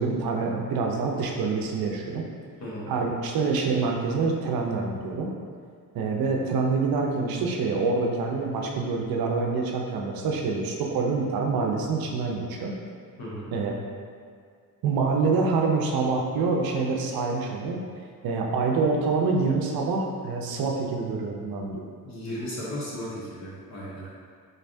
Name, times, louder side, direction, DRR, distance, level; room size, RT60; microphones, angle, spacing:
voice 1, 0.0-2.2 2.9-5.3 5.9-12.7 13.5-13.8 14.8-17.8 18.2-21.8, right 4 dB, 80° right, 0 dB, 0.6 m, -26 dB
voice 2, 13.2-13.5 22.1-24.1, equal, 50° left, -6 dB, 1.1 m, -35 dB
3.9 x 3.3 x 2.6 m, 2.2 s
cardioid pair, 160°, 36 cm